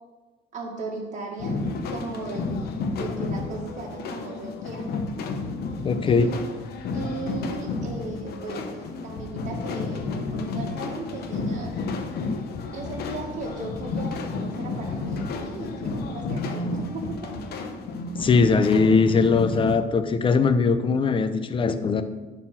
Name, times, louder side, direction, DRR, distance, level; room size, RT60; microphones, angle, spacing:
voice 1, 0.5-1.6 1.9-2.5 2.9-4.9 6.0-6.4 6.9-11.7 12.7-17.3, right 3 dB, 45° right, -3 dB, 2.0 m, -37 dB
sound 1, 1.4-19.8, left 3 dB, 70° left, 0.9 m, -31 dB
voice 2, 5.8-6.3 18.2-22.0, left 4 dB, 30° left, 10 dB, 0.7 m, -20 dB
9.6 x 4.2 x 6.0 m, 1.2 s
cardioid pair, 110°, 17 cm